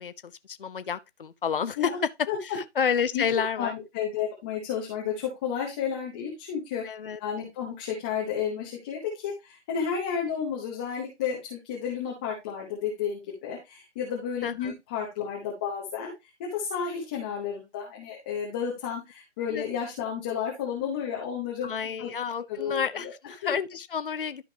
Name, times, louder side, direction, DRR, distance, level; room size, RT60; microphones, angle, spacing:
voice 1, 0.0-1.8 2.4-3.7 6.8-7.2 14.4-14.7 19.5-19.6 21.6-24.4, left 7 dB, 50° left, 0.8 m, -30 dB
voice 2, 2.3-2.6 3.1-3.3 3.6-6.8 7.2-16.1 16.4-21.7 22.0-22.1 22.5-23.1 23.4-23.5, left 7 dB, 10° left, 0.8 m, -32 dB
13.0 x 5.1 x 2.9 m
figure-of-eight pair, 155°, 35 cm